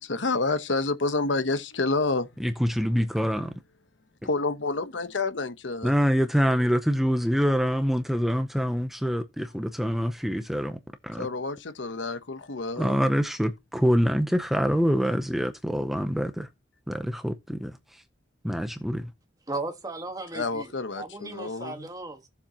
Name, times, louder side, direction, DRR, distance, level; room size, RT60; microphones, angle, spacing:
voice 1, 0.0-2.3 4.2-5.9 11.2-13.0 20.3-21.9, left 3 dB, 75° left, 1.0 m, -29 dB
voice 2, 2.4-3.6 5.8-11.3 12.8-16.5 16.9-18.0 18.4-19.1, equal, ahead, 0.6 m, -25 dB
voice 3, 19.5-20.7 21.0-22.3, right 2 dB, 20° right, 1.5 m, -36 dB
16.0 x 7.2 x 2.9 m
head